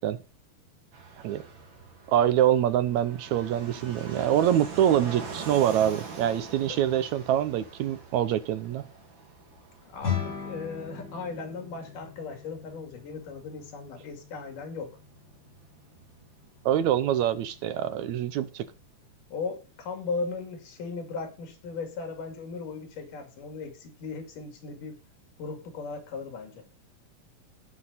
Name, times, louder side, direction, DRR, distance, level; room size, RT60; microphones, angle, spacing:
Fixed-wing aircraft airplane, 0.9-19.3, right 4 dB, 40° right, 2.5 m, -45 dB
voice 1, 2.1-8.9 16.7-18.7, right 11 dB, 75° right, 1.9 m, -25 dB
voice 2, 9.8-14.9 19.3-25.0 25.4-26.6, left 4 dB, 85° left, 4.0 m, -37 dB
sound 1, 10.0-19.5, left 7 dB, 55° left, 8.1 m, -40 dB
17.0 x 5.8 x 4.0 m
omnidirectional pair, 3.6 m